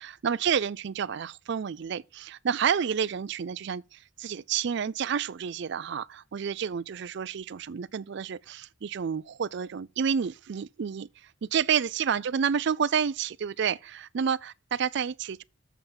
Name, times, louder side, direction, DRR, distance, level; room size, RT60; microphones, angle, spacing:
voice 1, 0.0-11.1 11.5-15.4, right 7 dB, 55° right, 0.4 m, -29 dB
7.1 x 5.5 x 7.2 m
head